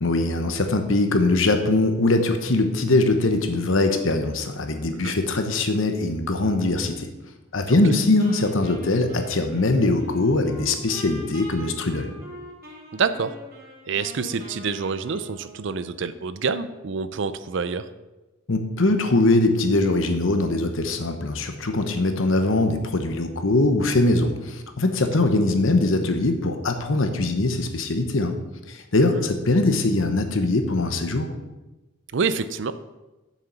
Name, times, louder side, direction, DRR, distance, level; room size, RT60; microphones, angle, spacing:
voice 1, 0.0-7.1 7.5-12.1 18.5-28.3 28.7-31.3, left 2 dB, 70° left, 6 dB, 1.0 m, -22 dB
Wind instrument woodwind instrument, 8.2-16.1, left 1 dB, 45° right, 2.6 m, -43 dB
voice 2, 12.9-13.3 13.9-17.9 29.1-29.3 32.1-32.7, right 5 dB, 60° right, 13 dB, 0.5 m, -27 dB
7.4 x 6.6 x 6.0 m, 1.1 s
head